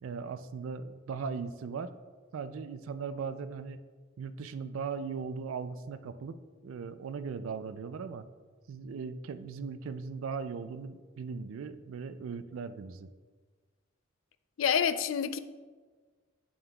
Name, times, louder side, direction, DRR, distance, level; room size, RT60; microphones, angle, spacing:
voice 1, 0.0-1.9 2.3-3.8 4.2-6.4 6.6-8.2 8.7-13.1, right 5 dB, 75° right, 0.4 m, -38 dB
voice 2, 14.6-15.4, left 7 dB, 70° left, 0.4 m, -27 dB
8.6 x 7.2 x 2.3 m
head